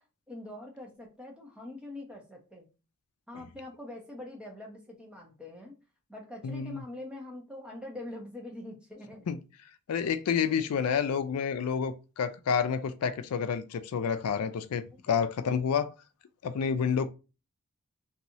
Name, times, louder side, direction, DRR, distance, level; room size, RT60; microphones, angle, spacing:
voice 1, 0.0-2.7 3.3-5.8 6.1-9.3, left 1 dB, 5° right, 0.8 m, -44 dB
voice 2, 6.4-6.8 9.3-9.4 9.9-15.9 16.4-17.1, left 6 dB, 85° left, 0.4 m, -29 dB
3.0 x 2.7 x 2.7 m
head